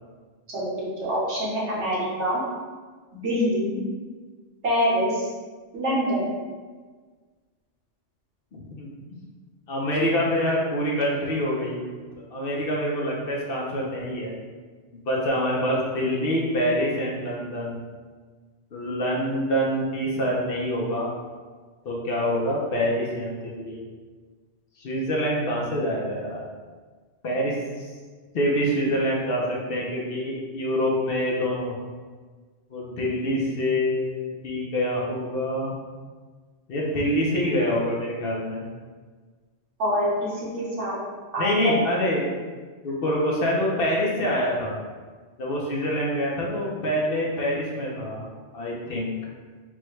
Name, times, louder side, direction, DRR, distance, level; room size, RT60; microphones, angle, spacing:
voice 1, 0.5-2.4 3.1-3.8 4.6-5.3 5.7-6.3 39.8-41.0 41.3-41.7, equal, 70° right, -7 dB, 1.3 m, -25 dB
voice 2, 8.5-8.9 9.7-11.8 12.3-14.4 14.9-17.8 18.7-21.1 21.8-23.8 24.8-26.4 27.2-27.9 28.3-31.7 32.7-35.7 36.7-38.6 41.4-42.3 42.8-44.8 45.4-48.2 48.5-49.1, equal, 55° left, -3 dB, 0.8 m, -26 dB
4.7 x 2.2 x 3.1 m, 1.5 s
omnidirectional pair, 1.2 m